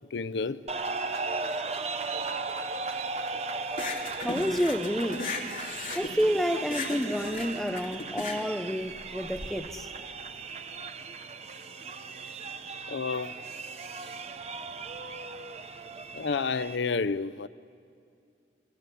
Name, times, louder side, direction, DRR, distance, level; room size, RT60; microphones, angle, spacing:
voice 1, 0.1-0.6 12.9-13.4 16.1-17.5, left 4 dB, 85° left, 0.6 m, -30 dB
sound 1, 0.7-16.8, right 4 dB, 35° right, 0.8 m, -37 dB
sound 2, 3.7-9.5, left 3 dB, 50° left, 2.7 m, -37 dB
voice 2, 4.2-5.3 5.9-9.9, equal, ahead, 0.8 m, -29 dB
28.0 x 21.5 x 8.4 m
head